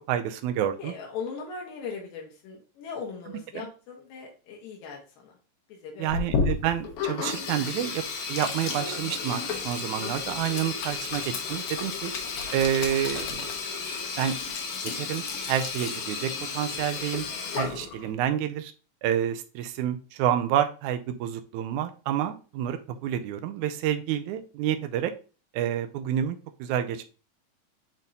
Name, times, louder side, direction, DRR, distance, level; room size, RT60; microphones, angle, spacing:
voice 1, 0.1-0.9 3.5-3.7 6.0-8.0 8.3-11.2 11.5-12.1 12.5-13.5 14.2-14.4 15.0-17.3 17.6-18.7 19.0-25.1 25.5-27.1, right 10 dB, 80° right, 7 dB, 1.8 m, -28 dB
voice 2, 0.8-5.3 5.7-6.2, left 5 dB, 85° left, -1 dB, 2.9 m, -39 dB
Sink (filling or washing), 6.1-18.1, left 5 dB, 65° left, 1.4 m, -32 dB
8.9 x 4.2 x 2.7 m, 0.34 s
omnidirectional pair, 3.8 m